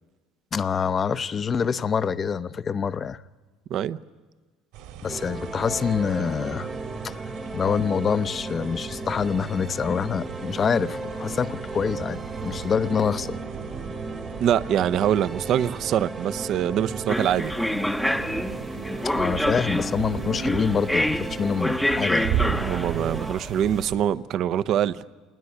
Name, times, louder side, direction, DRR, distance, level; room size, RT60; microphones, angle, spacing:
voice 1, 0.5-3.2 5.0-6.7 7.0-7.2 7.5-13.4 19.0-22.3, left 6 dB, 35° left, 0.8 m, -26 dB
sound 1, 4.7-24.0, right 9 dB, 75° right, 3.5 m, -37 dB
sound 2, 5.1-23.3, right 3 dB, 20° right, 1.2 m, -35 dB
voice 2, 14.4-17.5 22.6-25.0, right 10 dB, 55° right, 0.8 m, -24 dB
sound 3, 17.1-23.8, left 1 dB, 5° left, 0.8 m, -27 dB
27.5 x 20.0 x 9.7 m
supercardioid pair, 100°, 0 cm